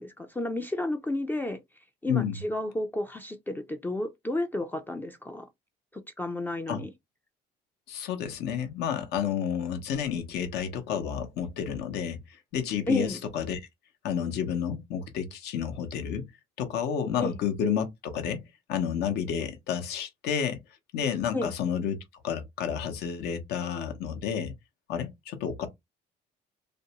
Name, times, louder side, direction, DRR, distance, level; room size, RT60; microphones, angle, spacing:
voice 1, 0.0-1.6 2.0-5.5 6.2-6.9 12.9-13.2 17.2-17.4 21.3-21.5, left 2 dB, 10° left, 0.3 m, -31 dB
voice 2, 2.1-2.4 6.7-6.8 7.9-13.6 14.0-16.2 16.6-18.4 18.7-20.6 20.9-22.0 22.2-24.5 24.9-25.7, left 8 dB, 75° left, 0.7 m, -30 dB
2.5 x 2.1 x 2.8 m
cardioid pair, 110°, 17 cm